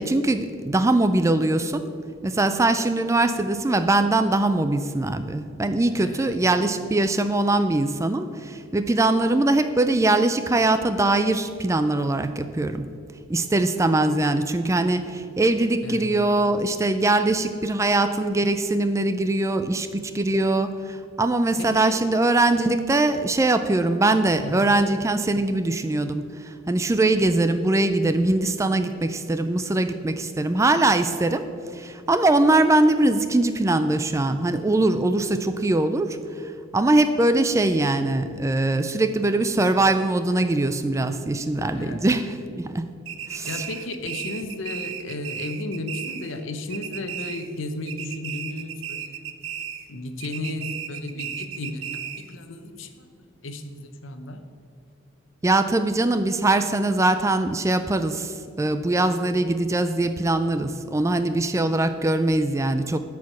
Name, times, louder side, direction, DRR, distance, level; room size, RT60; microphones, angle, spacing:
voice 1, 0.0-1.9 2.2-12.9 13.3-31.4 31.7-36.2 36.7-42.9 43.3-43.6 55.4-63.0, right 2 dB, 15° right, 10 dB, 0.3 m, -22 dB
voice 2, 6.1-6.4 15.8-16.1 21.6-22.0 24.4-24.7 41.7-42.0 43.4-49.2 49.9-53.1 53.4-54.4, left 2 dB, 75° left, 7 dB, 0.9 m, -34 dB
sound 1, 43.1-46.4 46.7-47.6 47.9-49.9 50.2-52.3, right 9 dB, 80° right, 0.6 m, -35 dB
12.5 x 4.8 x 5.9 m, 2.4 s
head